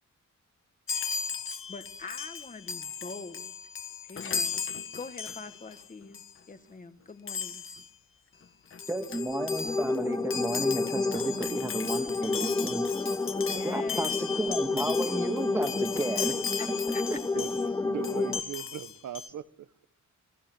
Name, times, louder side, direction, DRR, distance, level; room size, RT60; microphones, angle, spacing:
Chime, 0.9-5.8 6.1-6.4 7.3-7.9 8.4-8.5 8.7-17.7 18.0-19.3, left 6 dB, 45° left, 1.4 m, -36 dB
voice 1, 1.7-3.5 4.1-4.6 4.9-6.2 6.5-7.6 11.6-12.2 13.4-14.3 16.6-17.0, left 4 dB, 25° left, 1.5 m, -44 dB
voice 2, 8.9-12.9 13.6-16.4 16.7-17.5, right 1 dB, 10° right, 1.7 m, -33 dB
sound 1, 9.0-18.4, left 3 dB, 10° left, 0.9 m, -31 dB
voice 3, 17.8-19.9, right 10 dB, 90° right, 1.2 m, -39 dB
27.5 x 19.0 x 7.8 m
wide cardioid pair, 175°, 30 cm